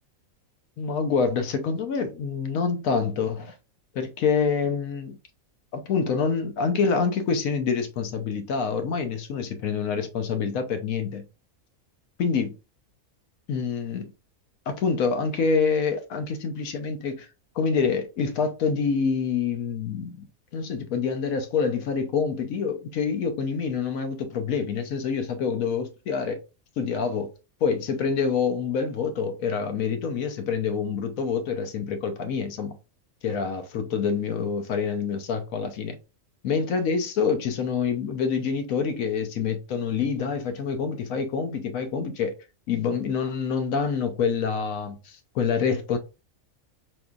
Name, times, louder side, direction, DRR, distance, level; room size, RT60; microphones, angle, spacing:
voice 1, 0.8-3.5 3.9-5.2 5.7-11.3 12.2-12.5 13.5-14.1 14.7-17.3 17.6-20.3 20.5-26.4 26.8-27.3 27.6-32.8 33.2-36.0 36.4-42.3 42.7-46.0, left 5 dB, 75° left, 1.2 m, -26 dB
4.4 x 3.0 x 2.4 m
omnidirectional pair, 1.5 m